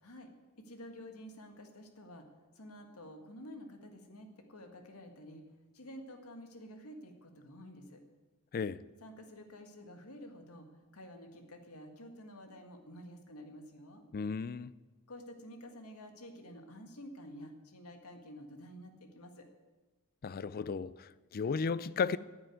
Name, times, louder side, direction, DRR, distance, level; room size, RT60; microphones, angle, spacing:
voice 1, 0.0-2.3 2.5-5.5 5.7-8.0 9.0-10.7 10.9-14.0 15.1-19.5, equal, 85° left, 1.8 m, -50 dB
voice 2, 14.1-14.7 20.2-22.2, left 5 dB, 45° left, 0.4 m, -34 dB
10.0 x 7.8 x 9.4 m
head